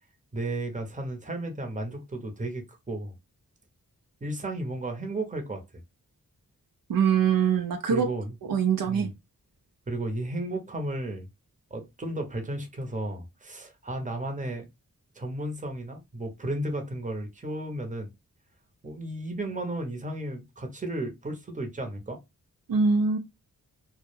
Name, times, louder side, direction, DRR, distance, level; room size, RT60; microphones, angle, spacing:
voice 1, 0.3-3.1 4.2-5.6 7.9-8.3 8.9-9.1 9.9-11.3 11.7-14.7 15.1-18.1 18.8-22.2, right 1 dB, 20° right, 0.8 m, -34 dB
voice 2, 6.9-8.1 8.5-9.1 22.7-23.2, right 6 dB, 75° right, 0.6 m, -23 dB
2.1 x 2.1 x 3.1 m
cardioid pair, 40°, 35 cm